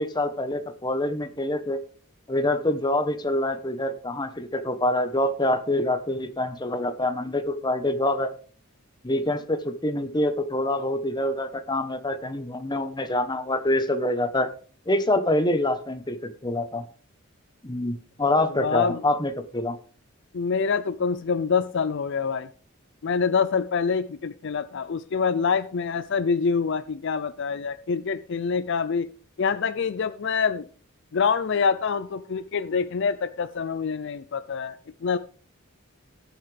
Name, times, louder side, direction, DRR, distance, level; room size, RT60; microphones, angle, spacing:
voice 1, 0.0-1.8 2.3-8.3 9.0-14.5 14.9-16.8 17.6-19.8, left 1 dB, 20° left, 1.0 m, -26 dB
voice 2, 18.4-19.0 20.3-22.5 23.0-29.1 29.4-30.7 31.1-35.2, left 5 dB, 60° left, 0.5 m, -26 dB
18.5 x 7.1 x 3.4 m
head